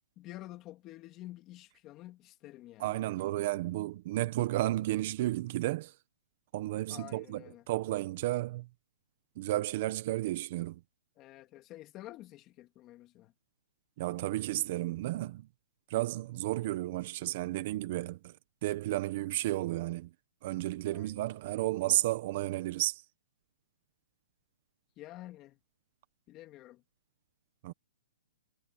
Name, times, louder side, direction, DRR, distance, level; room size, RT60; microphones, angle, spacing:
voice 1, 0.2-3.0 6.9-7.6 11.2-13.3 20.9-21.3 25.0-25.6 26.3-26.8, left 16 dB, 20° left, 3.1 m, -49 dB
voice 2, 2.8-5.9 6.5-8.7 9.4-10.8 14.0-15.5 15.9-18.4 18.6-20.1 20.4-23.0 27.6-27.7, right 16 dB, 40° right, 1.3 m, -32 dB
hypercardioid pair, 160°, 0 cm